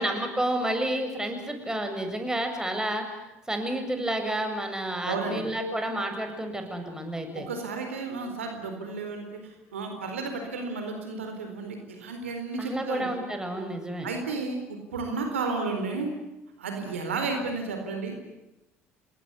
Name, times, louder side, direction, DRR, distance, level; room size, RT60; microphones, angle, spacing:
voice 1, 0.0-3.0 3.5-7.5 12.6-14.1, right 1 dB, 10° right, 5 dB, 7.4 m, -30 dB
voice 2, 5.0-5.4 7.3-13.1 14.0-16.1 16.6-18.2, right 3 dB, 85° right, 5 dB, 4.3 m, -32 dB
28.5 x 21.0 x 9.9 m, 0.97 s
hypercardioid pair, 60°, 7 cm